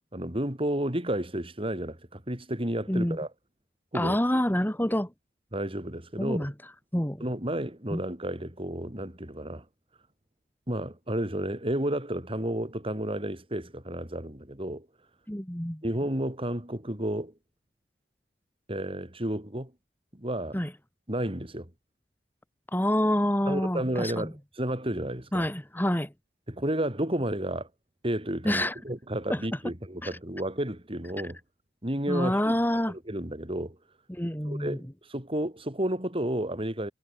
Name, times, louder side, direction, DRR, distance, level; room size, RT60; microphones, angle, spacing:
voice 1, 0.1-3.3 3.9-4.2 5.5-6.5 7.2-9.6 10.7-14.9 15.8-17.3 18.7-19.7 20.1-20.6 21.1-21.7 23.5-25.5 26.5-27.7 28.0-31.4 31.8-32.6 33.1-33.8 34.5-36.9, right 1 dB, 30° right, 4.5 m, -31 dB
voice 2, 3.9-5.1 6.2-6.5 6.9-7.3 7.9-8.0 15.3-15.8 20.5-20.7 22.7-24.3 25.3-26.1 28.4-28.7 29.3-29.4 30.0-30.1 32.1-32.9 34.1-34.8, left 1 dB, 10° left, 2.0 m, -27 dB
head